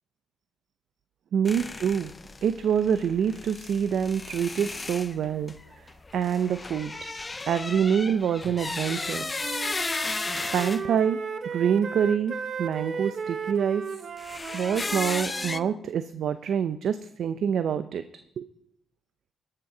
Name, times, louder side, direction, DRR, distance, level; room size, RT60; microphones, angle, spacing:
voice 1, 1.3-2.1 2.4-5.9 6.1-7.1 7.5-9.3 10.5-11.2 11.5-14.0 14.5-18.0 18.4-18.5, right 8 dB, 65° right, 11 dB, 0.6 m, -26 dB
sound 1, 1.4-10.8 14.2-15.6, left 3 dB, 25° left, 0.5 m, -35 dB
Wind instrument woodwind instrument, 9.0-15.7, right 5 dB, 45° right, 0.9 m, -35 dB
17.5 x 6.7 x 6.1 m, 0.76 s
cardioid pair, 90°, 0 cm